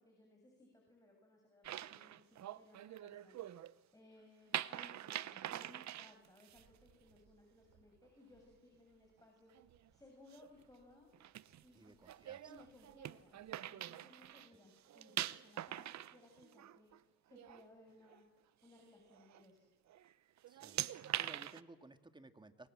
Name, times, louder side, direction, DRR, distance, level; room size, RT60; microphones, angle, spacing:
voice 1, 0.0-3.4 3.9-9.5 9.9-11.1 11.6-12.0 12.5-16.9 17.3-18.3 18.6-19.6, left 2 dB, 10° left, 1 dB, 6.9 m, -63 dB
sound 1, 1.6-3.7 4.5-6.6 9.5-9.9 10.3-10.5 11.1-14.5 14.8-17.0 17.3-17.6 18.1-18.2 19.1-19.4 19.9-20.1 20.4-21.6, right 12 dB, 65° right, 0.9 m, -44 dB
sound 2, 3.3-3.6 4.2-4.4 5.2-5.5 6.1-6.3 6.9-7.2 7.8-8.1 8.6-8.9, left 5 dB, 40° left, 6.7 m, -84 dB
sound 3, 6.5-13.5, right 7 dB, 80° right, 6.0 m, -75 dB
voice 2, 11.7-12.6 14.5-14.6 20.5-20.8 21.2-22.7, right 2 dB, 15° right, 8 dB, 2.2 m, -58 dB
28.5 x 24.0 x 7.5 m, 1.3 s
cardioid pair, 90°, 30 cm